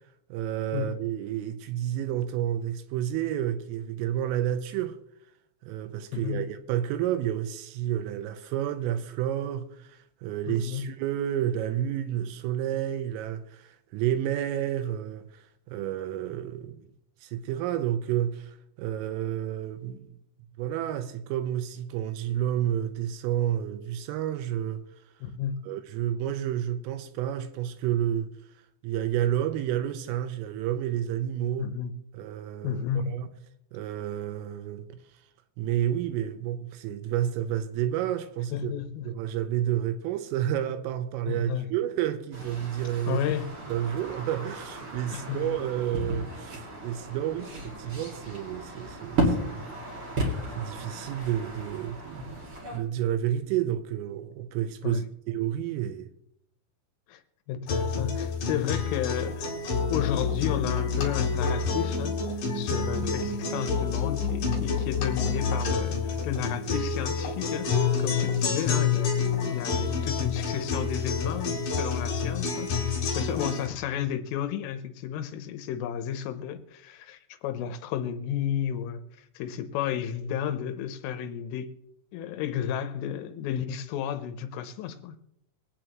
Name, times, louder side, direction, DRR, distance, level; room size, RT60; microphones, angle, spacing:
voice 1, 0.3-5.0 5.6-15.3 15.7-16.8 17.2-20.1 20.6-24.8 25.6-28.3 28.8-31.7 32.1-33.3 33.7-35.0 35.6-38.7 39.1-43.2 43.7-49.8 50.5-52.4 52.7-56.1, right 11 dB, 85° right, 3.2 m, -30 dB
voice 2, 6.1-6.4 10.5-10.9 25.2-25.6 31.6-31.9 32.6-33.1 38.5-39.1 41.3-41.7 43.1-43.5 45.1-45.6 52.2-52.3 54.8-55.0 57.1-57.2 57.5-59.5 59.9-62.2 62.5-81.7 82.1-85.2, left 9 dB, 80° left, 3.3 m, -32 dB
sound 1, 42.3-52.8, right 1 dB, 40° right, 2.0 m, -34 dB
sound 2, 57.7-73.7, left 5 dB, 55° left, 2.8 m, -28 dB
23.0 x 8.8 x 3.0 m
omnidirectional pair, 5.9 m